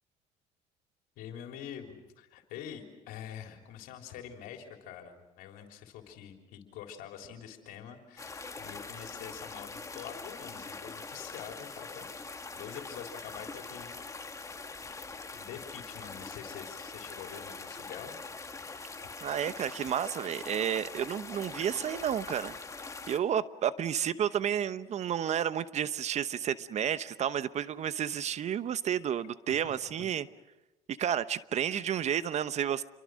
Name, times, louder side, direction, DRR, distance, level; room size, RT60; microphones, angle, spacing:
voice 1, 1.2-12.1 12.5-14.0 14.7-15.0 15.3-18.1 29.5-29.8, left 9 dB, 75° left, 4 dB, 3.7 m, -46 dB
sound 1, 8.2-23.2, left 4 dB, 20° left, 2.2 m, -43 dB
voice 2, 19.2-22.5 22.8-30.3 30.9-32.8, right 9 dB, 50° right, 15 dB, 1.0 m, -31 dB
28.5 x 23.5 x 6.4 m, 1.0 s
supercardioid pair, 85°, 15 cm